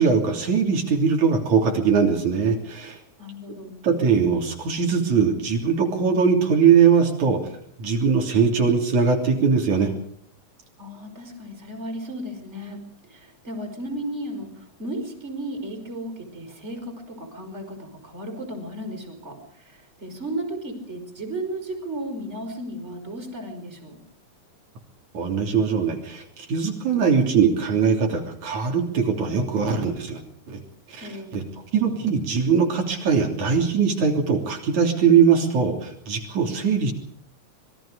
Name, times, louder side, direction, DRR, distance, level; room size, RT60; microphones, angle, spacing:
voice 1, 0.0-3.0 3.8-7.4 7.8-9.9 25.1-30.2 30.5-30.6 30.9-31.4 31.7-36.9, right 6 dB, 75° right, 2 dB, 4.6 m, -21 dB
voice 2, 3.2-3.8 10.8-24.0 31.0-31.5, right 1 dB, 20° right, 4 dB, 5.4 m, -34 dB
26.0 x 22.0 x 5.1 m, 0.63 s
omnidirectional pair, 3.4 m